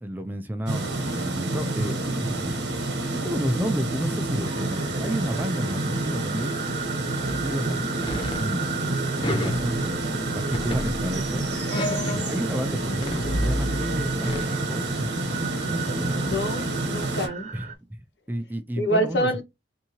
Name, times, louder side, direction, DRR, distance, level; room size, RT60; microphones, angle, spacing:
voice 1, 0.0-2.6 3.2-6.6 7.4-11.4 12.1-16.4 17.5-19.3, equal, 10° right, 0.4 m, -32 dB
sound 1, 0.7-17.3, right 2 dB, 80° right, 1.1 m, -28 dB
sound 2, 4.4-17.7, right 6 dB, 40° right, 0.8 m, -37 dB
sound 3, 7.2-7.5 8.0-8.5 9.2-10.2 10.5-12.6 12.9-14.4, left 1 dB, 30° left, 0.6 m, -31 dB
voice 2, 16.1-17.5 18.8-19.4, equal, 75° left, 1.2 m, -27 dB
3.5 x 2.8 x 2.9 m
head